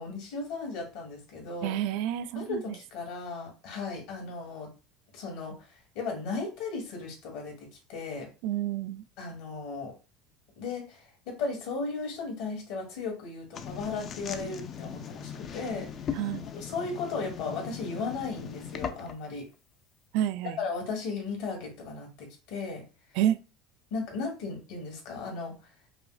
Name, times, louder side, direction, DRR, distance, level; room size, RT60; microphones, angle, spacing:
voice 1, 0.0-1.7 2.3-4.7 5.1-8.3 9.2-9.9 10.6-16.2 16.5-19.5 20.6-22.8 23.9-25.7, left 4 dB, 65° left, 1.7 m, -36 dB
voice 2, 1.6-2.6 8.4-9.0 16.1-16.4 20.1-20.6 23.2-23.4, right 11 dB, 70° right, 0.3 m, -29 dB
sound 1, 13.5-19.3, left 7 dB, 35° left, 0.4 m, -39 dB
4.8 x 2.0 x 2.4 m
supercardioid pair, 120°, 0 cm